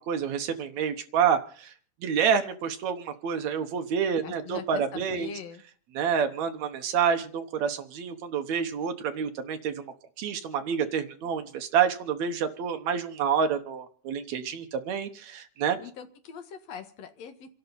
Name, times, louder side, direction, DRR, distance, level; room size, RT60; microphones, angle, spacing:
voice 1, 0.0-1.7 2.0-5.3 5.9-9.9 10.2-15.8, right 7 dB, 70° right, 8 dB, 2.2 m, -28 dB
voice 2, 4.2-5.6 15.8-17.6, left 7 dB, 60° left, 6 dB, 2.5 m, -42 dB
28.5 x 11.5 x 4.1 m, 0.44 s
omnidirectional pair, 3.5 m